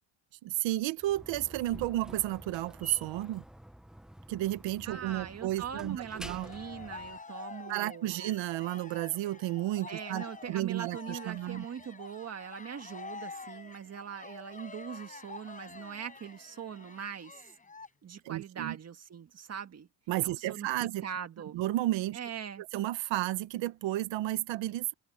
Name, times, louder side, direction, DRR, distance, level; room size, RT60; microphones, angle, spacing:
voice 1, 0.4-3.4 4.3-6.5 7.7-11.6 18.2-18.8 20.1-21.0 21.5-22.2 22.6-24.9, right 15 dB, 75° right, 1.3 m, -32 dB
Slam, 1.0-7.2, right 1 dB, ahead, 0.5 m, -48 dB
voice 2, 4.9-8.3 9.9-17.4 18.0-19.9 20.2-20.7 21.0-21.6 22.1-22.6, right 8 dB, 35° right, 1.9 m, -42 dB
Cheering, 6.1-17.9, left 4 dB, 15° left, 4.8 m, -48 dB
cardioid pair, 145°, 46 cm